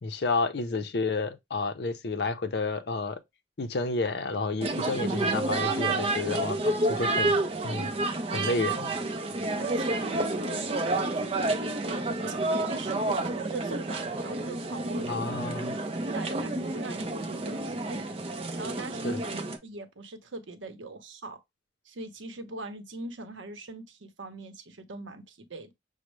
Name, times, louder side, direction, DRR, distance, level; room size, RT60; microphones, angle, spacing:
voice 1, 0.0-3.2 3.6-7.4 7.6-7.9 8.3-8.9 15.1-15.8 19.0-19.2, left 3 dB, 60° left, 0.5 m, -30 dB
sound 1, 4.6-19.6, right 2 dB, 30° right, 0.5 m, -30 dB
voice 2, 9.5-12.2 12.7-15.1 16.1-18.0 18.6-21.4 21.8-25.7, right 2 dB, 85° right, 0.7 m, -41 dB
6.2 x 2.1 x 3.1 m
head